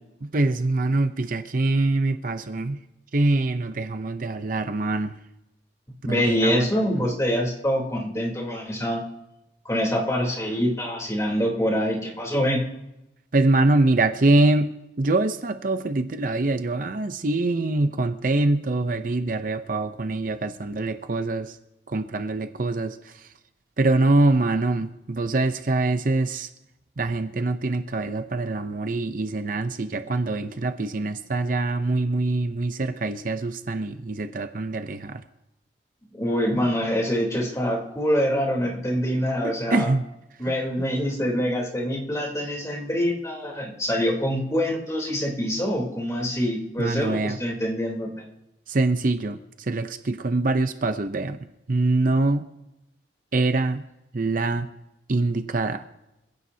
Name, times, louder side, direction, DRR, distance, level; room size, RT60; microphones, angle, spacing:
voice 1, 0.2-2.8 3.1-5.1 6.1-6.7 13.3-21.6 21.9-23.3 23.8-26.5 27.0-35.2 39.4-40.1 40.5-40.9 46.8-47.4 48.7-51.4 51.7-52.4 53.3-53.8 54.1-54.7 55.1-55.8, right 2 dB, 50° right, 9 dB, 0.7 m, -24 dB
voice 2, 6.0-9.0 9.7-12.6 36.1-39.9 40.4-48.1, equal, 20° left, -2 dB, 3.4 m, -25 dB
25.5 x 16.0 x 2.8 m, 0.92 s
head